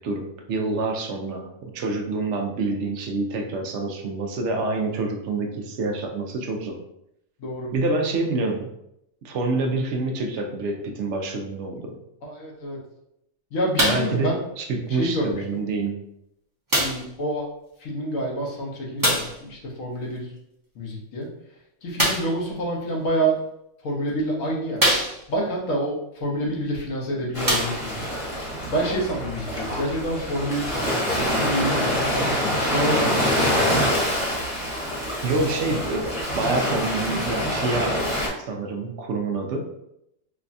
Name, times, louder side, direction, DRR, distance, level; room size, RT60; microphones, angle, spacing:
voice 1, 0.0-6.8 7.7-8.7 9.2-12.0 13.8-14.3 14.6-16.0 35.2-39.6, right 3 dB, 65° right, 3 dB, 0.8 m, -27 dB
voice 2, 7.4-7.7 8.2-8.3 12.2-12.8 13.5-14.4 14.9-15.6 16.8-17.5 17.8-20.3 20.7-21.3 21.8-23.4 23.8-24.8 25.3-28.0 28.4-33.9, right 1 dB, 75° left, -2 dB, 1.3 m, -28 dB
sound 1, 13.8-14.2 15.1-15.2 16.7-17.1 19.0-19.4 21.9-22.4 23.4-23.5 24.1-24.2 24.8-25.5 26.7-26.8 27.4-28.1 28.9-29.0, right 1 dB, 20° right, 0.7 m, -23 dB
Ocean, 27.3-38.3, equal, 25° left, 1.0 m, -25 dB
4.8 x 2.2 x 2.5 m, 0.80 s
omnidirectional pair, 1.4 m